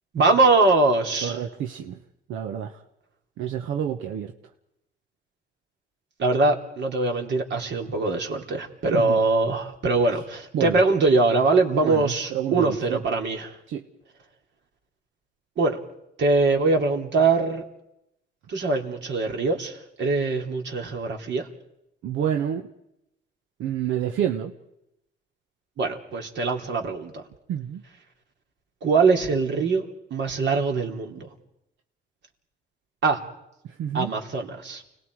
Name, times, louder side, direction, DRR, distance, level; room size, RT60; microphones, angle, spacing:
voice 1, 0.1-1.4 6.2-13.6 15.6-15.8 16.2-17.7 18.5-21.5 25.8-27.2 28.8-29.8 30.1-31.3 33.0-33.2 33.9-34.8, right 3 dB, 65° right, 2 dB, 3.4 m, -22 dB
voice 2, 1.2-2.0 2.3-2.8 3.4-4.3 8.9-9.2 10.5-10.8 11.7-13.0 13.7-13.8 22.0-22.7 23.6-24.5 27.5-27.8 33.6-34.1, right 9 dB, 85° right, 5 dB, 1.2 m, -28 dB
29.5 x 19.5 x 4.8 m, 0.83 s
cardioid pair, 90°, 20 cm